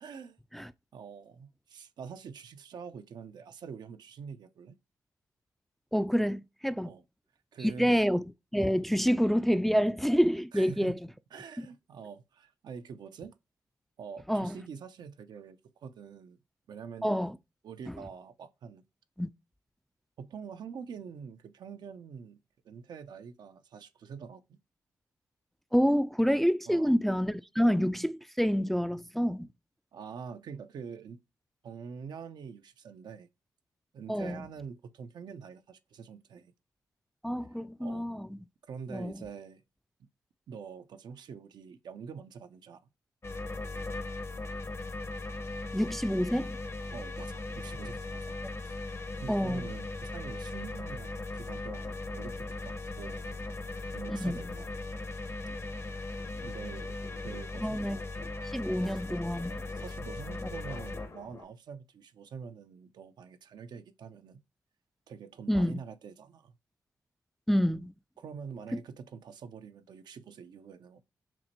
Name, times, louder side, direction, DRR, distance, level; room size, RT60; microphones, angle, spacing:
voice 1, 0.0-0.4 0.9-4.8 6.8-7.0 7.5-8.0 10.5-11.0 11.3-13.4 14.0-16.4 16.7-17.2 17.6-18.8 20.2-24.6 26.7-26.9 29.9-31.2 31.6-33.3 33.9-36.5 37.8-38.1 38.7-39.6 40.5-42.8 46.9-48.4 48.6-53.4 53.9-54.8 56.4-57.8 58.8-59.0 59.5-64.4 65.1-66.6 68.2-71.0, right 6 dB, 75° right, 0.5 m, -45 dB
voice 2, 5.9-6.9 7.6-8.3 8.5-11.0 11.6-11.7 14.3-14.6 17.0-17.4 19.2-19.3 25.7-29.5 34.1-34.5 37.2-38.3 38.9-39.1 45.7-46.5 49.3-49.7 54.1-54.5 57.6-58.0 58.4-59.5 60.4-60.5 65.5-65.8 67.5-67.9 68.7-68.8, equal, 5° left, 0.3 m, -28 dB
sound 1, 43.2-61.1, left 2 dB, 40° left, 0.7 m, -38 dB
sound 2, 47.4-48.8 49.4-61.4, left 4 dB, 65° left, 1.2 m, -55 dB
5.9 x 2.1 x 2.8 m
supercardioid pair, 45°, 7 cm